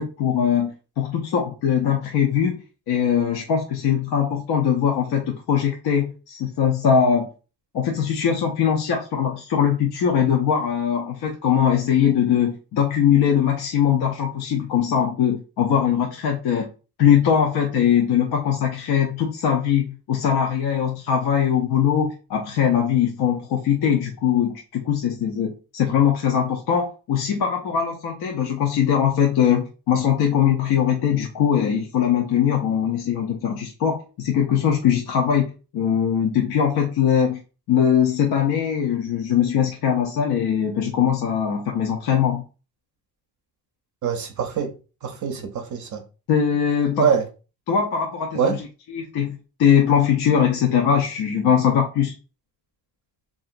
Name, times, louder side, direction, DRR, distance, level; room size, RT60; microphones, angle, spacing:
voice 1, 0.0-2.6 2.9-7.3 7.7-16.7 17.0-37.4 37.7-42.4 46.3-47.1 47.7-48.6 48.9-52.1, left 8 dB, 70° left, 0.6 m, -21 dB
voice 2, 44.0-44.7 45.0-46.0 47.0-47.2 48.3-48.6, right 7 dB, 50° right, 0.5 m, -23 dB
2.8 x 2.5 x 2.4 m
cardioid pair, 80°, 40 cm